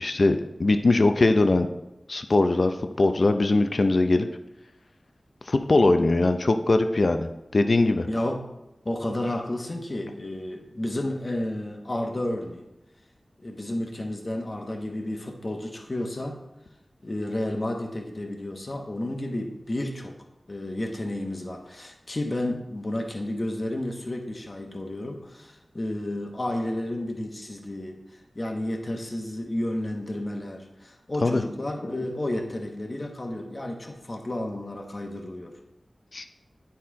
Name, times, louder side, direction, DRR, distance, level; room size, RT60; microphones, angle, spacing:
voice 1, 0.0-1.7 2.1-4.3 5.5-8.1 31.2-31.4 36.1-36.3, left 2 dB, 60° left, 8 dB, 0.5 m, -21 dB
voice 2, 8.1-8.4 8.8-12.7 13.4-16.4 17.0-20.2 20.5-35.5, left 1 dB, 45° left, 3 dB, 1.1 m, -31 dB
9.7 x 4.3 x 3.7 m, 0.91 s
cardioid pair, 40°, 0 cm